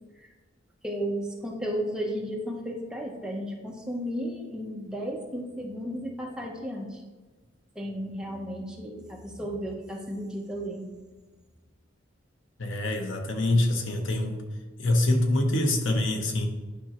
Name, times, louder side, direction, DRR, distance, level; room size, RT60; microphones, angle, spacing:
voice 1, 0.8-7.0 7.7-10.9, equal, 5° right, -1 dB, 0.9 m, -34 dB
voice 2, 12.6-14.4 14.8-16.5, left 1 dB, 80° left, 4 dB, 1.0 m, -25 dB
10.0 x 5.3 x 3.0 m, 1.3 s
head